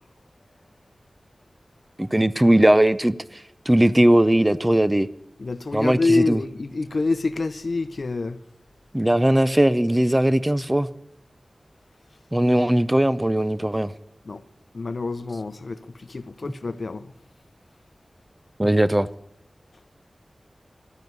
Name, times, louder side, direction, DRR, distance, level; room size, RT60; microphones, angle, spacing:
voice 1, 2.0-3.2 3.7-5.1 5.7-6.4 8.9-10.9 12.3-13.9 18.6-19.1, right 1 dB, 15° right, 0.6 m, -19 dB
voice 2, 5.4-8.4 14.3-14.4 14.7-15.8 16.1-17.1, left 3 dB, 60° left, 0.7 m, -26 dB
12.5 x 10.0 x 9.5 m
wide cardioid pair, 85°, 0 cm